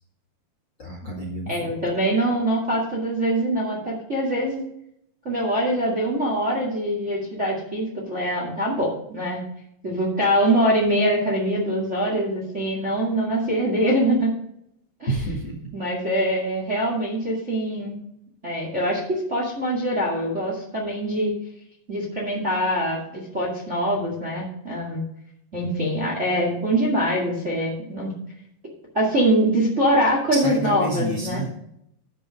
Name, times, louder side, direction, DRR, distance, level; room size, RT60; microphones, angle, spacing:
voice 1, 0.8-1.7 15.1-15.5 30.3-31.5, right 1 dB, 40° left, -2 dB, 1.8 m, -29 dB
voice 2, 1.5-4.6 5.2-9.4 9.8-14.3 15.0-15.1 15.7-18.0 18.4-21.3 21.9-25.0 25.5-28.1 28.9-31.4, right 1 dB, 25° right, -2 dB, 1.6 m, -23 dB
12.0 x 5.4 x 5.3 m, 0.76 s
omnidirectional pair, 4.8 m